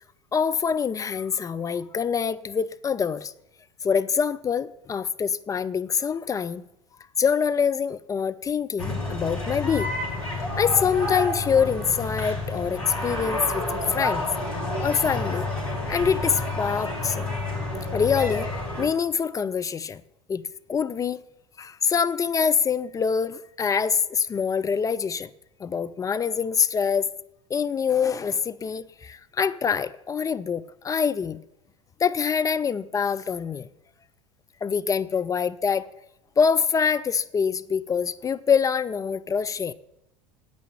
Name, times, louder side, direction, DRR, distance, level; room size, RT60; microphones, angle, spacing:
voice 1, 0.3-3.3 3.8-6.6 7.2-9.9 10.6-14.3 14.8-15.5 15.9-17.3 17.9-18.5 18.8-20.0 20.3-20.4 20.7-21.2 21.6-25.3 25.6-27.1 27.5-31.4 32.0-33.7 34.6-35.9 36.4-39.7, left 6 dB, 20° left, 0.4 m, -25 dB
sound 1, 8.8-18.9, left 2 dB, 75° left, 2.9 m, -29 dB
9.5 x 8.4 x 6.9 m
figure-of-eight pair, 75°, 18 cm